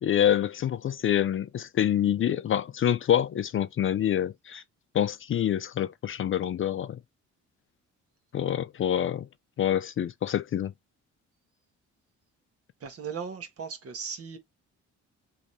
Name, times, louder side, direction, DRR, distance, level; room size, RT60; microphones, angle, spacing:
voice 1, 0.0-4.6 4.9-7.0 8.3-9.3 9.6-10.7, left 10 dB, 45° left, 0.4 m, -26 dB
voice 2, 12.8-14.4, right 6 dB, 50° right, 1.4 m, -37 dB
3.2 x 3.2 x 4.1 m
cardioid pair, 90°, 30 cm